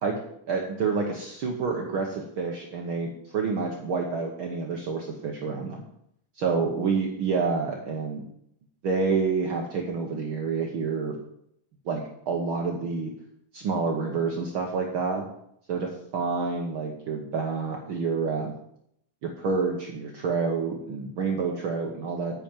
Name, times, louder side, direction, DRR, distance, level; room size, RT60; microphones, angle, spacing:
voice 1, 0.5-5.8 6.4-8.2 8.8-11.1 11.8-13.1 13.5-15.2 15.7-18.5 19.2-22.4, right 4 dB, 85° right, 1 dB, 1.1 m, -28 dB
9.1 x 6.3 x 7.3 m, 0.72 s
omnidirectional pair, 4.1 m